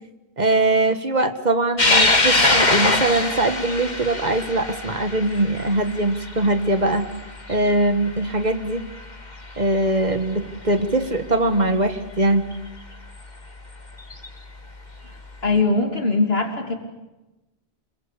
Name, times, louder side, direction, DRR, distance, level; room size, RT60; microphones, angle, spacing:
voice 1, 0.4-7.0 7.5-8.8 9.6-12.5, right 2 dB, 45° right, 9 dB, 1.7 m, -21 dB
sound 1, 1.8-8.5 8.9-9.0 10.2-10.3 12.5-12.6 14.0-14.3, left 2 dB, 45° left, 2.5 m, -22 dB
voice 2, 15.4-16.7, left 3 dB, 70° left, 4 dB, 3.2 m, -21 dB
27.5 x 22.5 x 8.4 m, 1.0 s
omnidirectional pair, 1.1 m